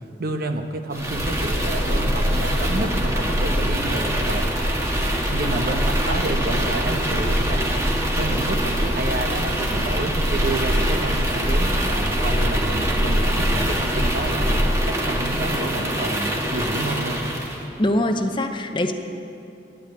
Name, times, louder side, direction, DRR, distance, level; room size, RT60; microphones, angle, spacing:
voice 1, 0.2-4.5 5.3-7.6 8.1-17.2, right 2 dB, 55° right, 6 dB, 1.0 m, -29 dB
fire storm, 0.9-17.6, equal, 15° right, 1.5 m, -23 dB
voice 2, 17.8-18.9, left 1 dB, 25° left, 6 dB, 0.7 m, -22 dB
12.5 x 10.0 x 8.7 m, 2.8 s
head